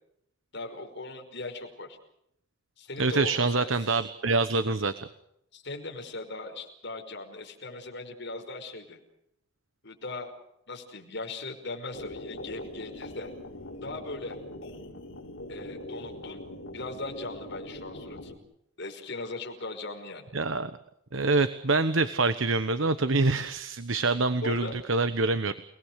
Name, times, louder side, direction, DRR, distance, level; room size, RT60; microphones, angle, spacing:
voice 1, 0.5-2.0 2.8-3.7 5.5-9.0 9.8-10.3 10.7-13.3 13.8-14.4 15.5-16.4 16.7-18.3 18.8-20.3 24.4-24.8, left 2 dB, 60° left, 2 dB, 5.4 m, -39 dB
voice 2, 3.0-4.9 20.3-20.7 21.1-25.5, right 3 dB, 70° right, 12 dB, 1.2 m, -25 dB
sound 1, 11.9-18.4, left 1 dB, 80° left, 5.3 m, -42 dB
30.0 x 19.5 x 6.6 m, 0.76 s
head